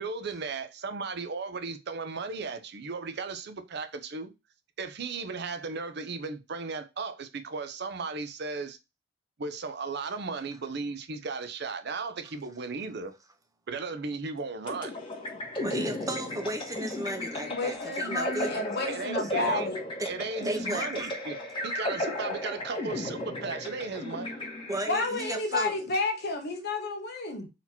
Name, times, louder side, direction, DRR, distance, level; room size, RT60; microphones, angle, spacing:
voice 1, 0.0-4.3 4.8-8.8 9.4-13.1 13.7-15.0 18.9-19.7 20.1-21.4 21.6-24.3, right 4 dB, 60° right, 0.6 m, -35 dB
sound 1, 14.7-25.1, left 1 dB, 30° left, 1.5 m, -35 dB
voice 2, 15.6-18.6 20.0-20.1 20.4-21.1 24.7-25.8, right 1 dB, 20° right, 0.7 m, -34 dB
voice 3, 17.4-19.8 24.9-27.5, left 2 dB, 60° left, 1.0 m, -31 dB
4.1 x 2.9 x 4.3 m
head